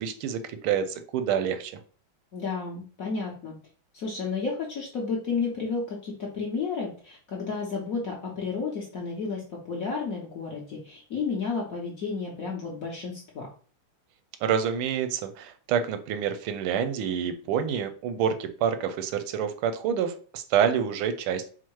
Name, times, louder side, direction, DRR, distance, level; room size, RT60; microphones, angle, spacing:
voice 1, 0.0-1.7 14.4-21.5, right 8 dB, 85° right, 9 dB, 1.4 m, -27 dB
voice 2, 2.3-3.5 3.9-13.5, left 4 dB, 65° left, -2 dB, 0.9 m, -32 dB
4.4 x 2.0 x 4.5 m, 0.41 s
omnidirectional pair, 2.3 m